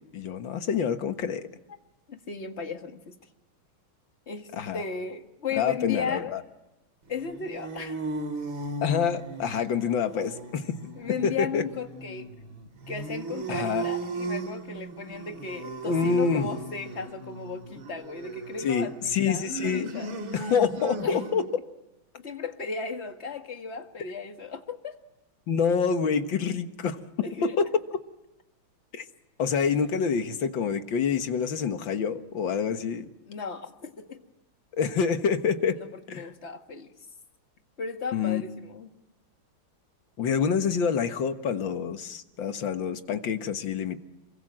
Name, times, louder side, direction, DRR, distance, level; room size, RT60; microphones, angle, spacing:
voice 1, 0.1-1.5 4.5-4.8 5.6-6.4 8.8-10.8 11.2-11.6 13.5-13.9 15.9-16.5 18.6-20.0 20.3-21.5 25.5-27.0 27.4-27.7 28.9-29.1 29.4-33.1 34.8-35.8 36.1-36.3 38.1-38.4 40.2-44.0, left 6 dB, 65° left, 8 dB, 2.1 m, -27 dB
voice 2, 2.1-3.1 4.3-6.4 7.1-8.0 11.0-12.3 12.9-20.5 21.0-21.2 22.1-25.0 27.2-27.6 33.3-34.3 35.7-36.9 37.8-38.9, left 5 dB, 30° left, 5 dB, 2.0 m, -36 dB
sound 1, 7.1-21.6, right 3 dB, 65° right, 2.9 m, -37 dB
28.0 x 24.0 x 7.6 m, 0.96 s
omnidirectional pair, 2.4 m